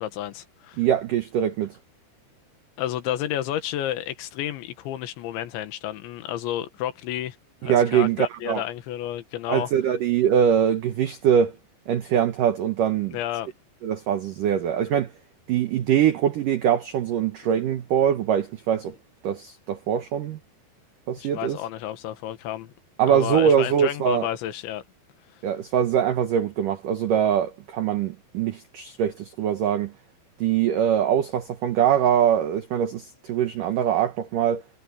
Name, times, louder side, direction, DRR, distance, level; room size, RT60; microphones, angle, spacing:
voice 1, 0.0-0.8 2.8-7.4 7.6-9.7 13.1-13.5 21.2-22.7 23.1-24.8, left 12 dB, 75° left, 3.7 m, -31 dB
voice 2, 0.8-1.8 7.6-8.6 9.5-11.6 11.9-13.2 13.8-15.1 15.5-19.0 19.2-20.4 21.1-21.6 23.0-24.3 25.4-29.9 30.4-34.6, right 9 dB, 80° right, 1.9 m, -23 dB
omnidirectional pair, 5.6 m